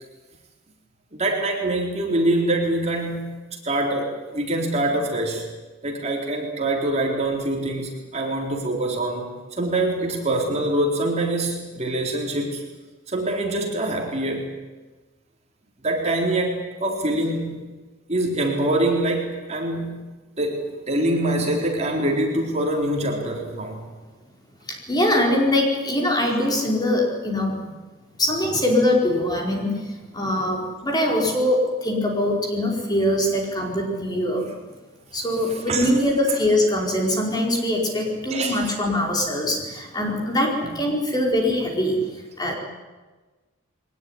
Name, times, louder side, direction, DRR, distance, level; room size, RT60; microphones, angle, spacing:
voice 1, 1.1-3.4 3.6-5.5 5.8-12.6 13.1-14.5 15.8-17.6 18.1-23.8 27.6-27.7 30.3-30.4 31.1-31.3 35.5-35.9 38.3-38.6 40.6-40.8, right 1 dB, 30° right, 0 dB, 4.0 m, -25 dB
voice 2, 24.7-27.6 28.2-29.9 30.1-34.4 35.1-42.0 42.4-42.5, left 1 dB, 20° left, 0 dB, 4.8 m, -22 dB
22.5 x 19.5 x 9.8 m, 1.3 s
head